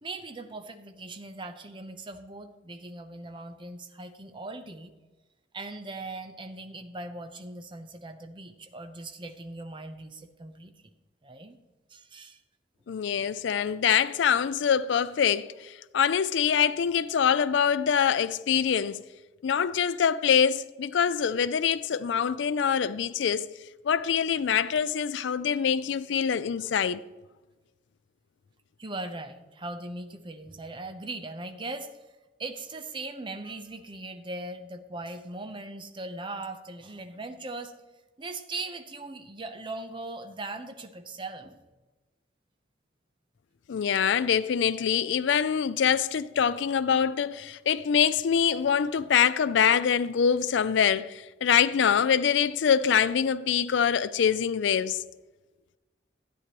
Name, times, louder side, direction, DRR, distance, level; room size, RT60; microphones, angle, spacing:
voice 1, 0.0-4.9 5.5-10.9 11.2-11.6 11.9-12.4 28.8-32.0 32.4-37.7 38.2-41.6, right 2 dB, 25° right, 0.7 m, -39 dB
voice 2, 12.9-19.0 19.4-23.5 23.8-27.0 43.7-55.0, left 7 dB, 75° left, 0.4 m, -24 dB
13.0 x 9.6 x 3.0 m
head